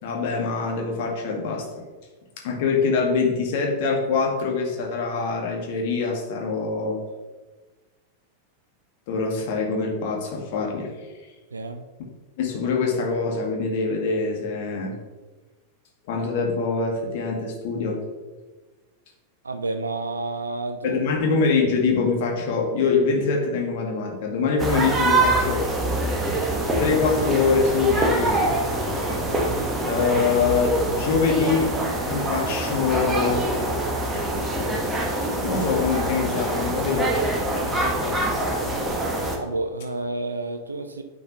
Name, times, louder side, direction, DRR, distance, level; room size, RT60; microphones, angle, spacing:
voice 1, 0.0-1.8 2.4-7.0 9.1-10.9 12.4-14.9 16.1-18.0 20.8-25.7 26.8-28.5 29.8-31.8 32.1-33.6 35.4-37.1, left 4 dB, 50° left, 0 dB, 1.7 m, -24 dB
voice 2, 11.5-11.8 19.4-21.0 39.4-41.0, right 2 dB, 75° right, 8 dB, 0.5 m, -30 dB
sound 1, 24.6-39.4, right 1 dB, 15° right, 1.2 m, -25 dB
9.2 x 5.2 x 3.1 m, 1.3 s
figure-of-eight pair, 90°, 0 cm